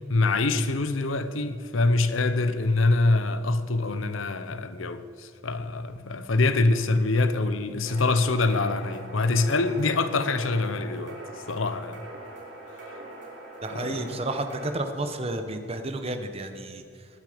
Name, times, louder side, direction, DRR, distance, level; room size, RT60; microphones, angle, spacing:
voice 1, 0.1-11.2 11.5-12.0 13.7-14.1, left 3 dB, 85° left, 0.9 m, -25 dB
sound 1, 7.9-14.7, right 2 dB, 65° right, 3.1 m, -42 dB
voice 2, 13.6-17.1, right 2 dB, 30° right, 1.0 m, -32 dB
19.5 x 9.2 x 5.2 m
head